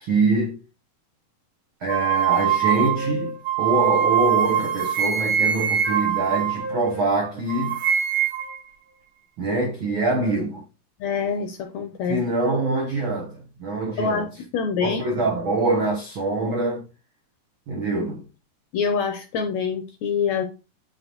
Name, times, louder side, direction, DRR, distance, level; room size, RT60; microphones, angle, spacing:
voice 1, 0.0-0.6 1.8-7.8 9.4-10.6 12.1-14.3 14.8-16.8 17.7-18.2, right 3 dB, 80° right, 1.1 m, -24 dB
sound 1, 1.9-7.2 7.5-8.6, right 9 dB, 55° right, 2.8 m, -23 dB
voice 2, 11.0-12.2 14.0-15.2 18.7-20.4, left 6 dB, 75° left, 1.8 m, -25 dB
10.0 x 3.9 x 3.0 m
omnidirectional pair, 4.0 m